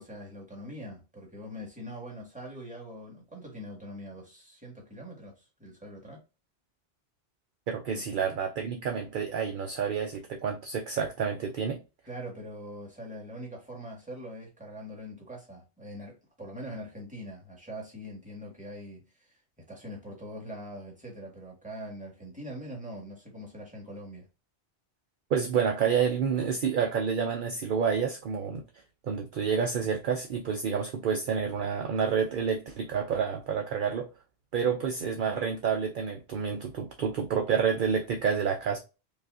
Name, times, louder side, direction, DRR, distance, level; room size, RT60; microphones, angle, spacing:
voice 1, 0.0-6.2 7.9-8.0 12.1-19.4 19.7-24.3, equal, 5° right, 1.5 m, -43 dB
voice 2, 7.7-11.8 25.3-28.6 29.0-34.1 34.5-38.8, right 6 dB, 55° right, 0.6 m, -29 dB
5.3 x 2.4 x 2.4 m
omnidirectional pair, 1.1 m